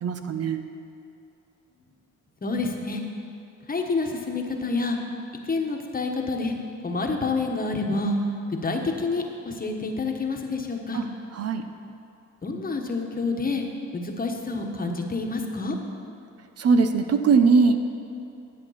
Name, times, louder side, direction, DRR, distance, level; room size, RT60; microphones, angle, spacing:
voice 1, 0.0-0.6 10.9-11.0 11.3-11.6 16.6-17.8, right 5 dB, 55° right, 8 dB, 0.9 m, -20 dB
voice 2, 2.4-3.0 3.7-5.0 5.5-6.6 6.8-8.2 8.6-11.0 12.4-13.7 13.9-15.8, left 3 dB, 30° left, 2 dB, 1.4 m, -28 dB
11.0 x 8.2 x 5.8 m, 2.7 s
cardioid pair, 90°, 30 cm